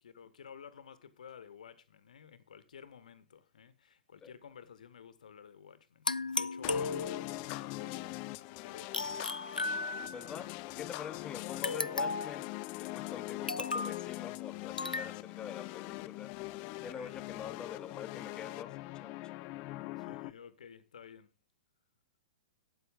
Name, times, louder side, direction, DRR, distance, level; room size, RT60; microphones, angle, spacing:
voice 1, 0.0-9.2 16.7-17.2 20.0-21.3, left 7 dB, 65° left, 1.5 m, -53 dB
sound 1, 6.1-7.5 8.9-10.4 11.6-12.4 13.5-14.0 14.8-15.1, left 3 dB, 85° left, 0.5 m, -35 dB
sound 2, 6.6-20.3, left 20 dB, 35° left, 0.5 m, -42 dB
voice 2, 10.1-19.3, left 8 dB, 15° left, 0.9 m, -46 dB
12.5 x 9.1 x 3.7 m
figure-of-eight pair, 110°, 4 cm